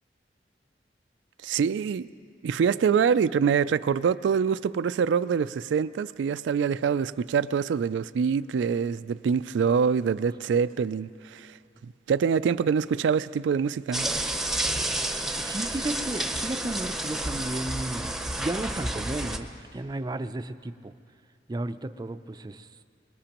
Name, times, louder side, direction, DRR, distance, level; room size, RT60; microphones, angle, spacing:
voice 1, 1.4-2.1 2.4-11.6 11.8-14.1 15.0-15.1, right 6 dB, 90° right, 0.3 m, -25 dB
sound 1, 13.9-19.4, right 1 dB, 5° right, 0.7 m, -30 dB
voice 2, 15.4-20.9 21.5-22.7, right 2 dB, 25° right, 0.4 m, -34 dB
22.5 x 21.0 x 3.0 m
head